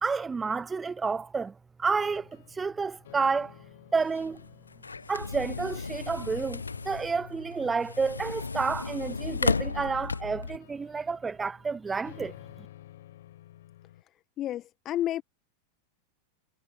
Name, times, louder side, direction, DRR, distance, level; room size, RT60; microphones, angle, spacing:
voice 1, 0.0-1.5 1.8-3.5 3.9-4.4 5.1-12.3, right 4 dB, 15° right, 1.0 m, -30 dB
sound 1, 1.8-14.0, left 13 dB, 55° left, 7.0 m, -52 dB
sound 2, 4.0-10.6, left 4 dB, 75° left, 0.4 m, -34 dB
voice 2, 14.0-15.2, left 12 dB, 30° left, 1.6 m, -32 dB
figure-of-eight pair, 90°, 0 cm